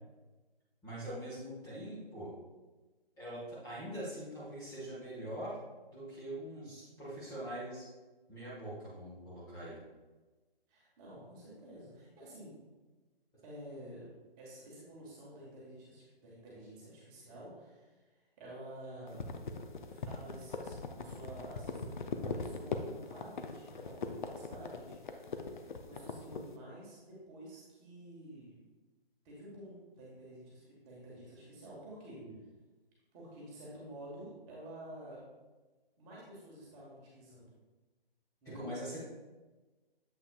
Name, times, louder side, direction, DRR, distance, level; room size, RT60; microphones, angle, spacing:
voice 1, 0.8-2.3 3.2-5.6 5.9-7.9 8.3-9.8 32.2-32.4 38.4-39.0, right 1 dB, 10° left, -9 dB, 1.2 m, -43 dB
voice 2, 10.7-12.6 13.4-14.1 14.4-19.3 19.8-25.4 25.8-28.5 29.2-32.2 33.1-35.2 36.0-37.5 38.4-38.6, right 1 dB, 20° right, -6 dB, 1.4 m, -50 dB
sound 1, 19.1-26.5, left 4 dB, 55° left, 0.6 m, -40 dB
7.6 x 5.5 x 2.3 m, 1.2 s
figure-of-eight pair, 140°, 30 cm